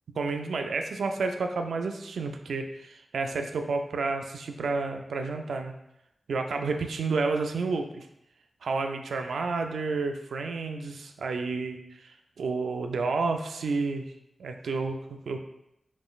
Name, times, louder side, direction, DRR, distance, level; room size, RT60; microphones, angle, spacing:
voice 1, 0.2-5.7 6.3-8.1 8.6-14.0 14.4-15.4, right 4 dB, 90° right, 5 dB, 0.3 m, -30 dB
5.2 x 3.1 x 2.3 m, 0.81 s
cardioid pair, 55°, 0 cm